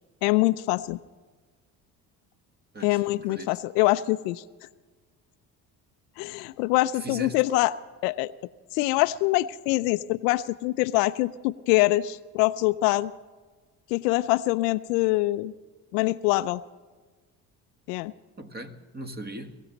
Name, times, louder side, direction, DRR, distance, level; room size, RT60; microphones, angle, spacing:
voice 1, 0.2-1.0 2.8-4.4 6.2-7.7 8.0-8.3 8.7-13.1 13.9-15.5 15.9-16.6 17.9-18.1, left 18 dB, 80° left, 0.6 m, -24 dB
voice 2, 3.3-3.6 7.0-7.4 18.4-19.5, equal, 20° right, 1.7 m, -38 dB
22.5 x 15.5 x 3.9 m
hypercardioid pair, 60°, 47 cm